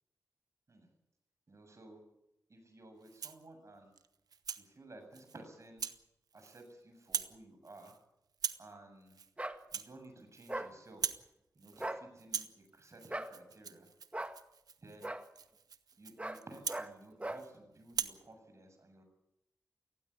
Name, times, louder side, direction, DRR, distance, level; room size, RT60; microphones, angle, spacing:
voice 1, 1.5-2.0 2.5-3.9 4.6-5.8 6.3-7.9 8.6-9.2 9.7-11.1 11.5-13.9 14.8-15.1 16.0-19.0, right 2 dB, 50° right, 6 dB, 7.6 m, -55 dB
Rattle (instrument), 3.0-3.5 4.0-4.7 5.1-5.4 5.8-6.0 6.3-6.7 7.0-7.4 7.6-8.0 8.3-8.7 9.1-9.3 9.6-10.6 10.9-11.3 11.6-11.9 12.2-17.5 17.9-18.2, right 6 dB, 80° right, 1.1 m, -42 dB
sound 1, 9.4-9.6 10.5-10.7 11.7-12.0 13.1-13.3 14.1-14.4 15.0-15.2 16.2-16.4 16.7-16.9 17.2-17.4, right 1 dB, 20° right, 1.9 m, -39 dB
18.5 x 16.5 x 9.7 m, 0.85 s
cardioid pair, 40°, 6 cm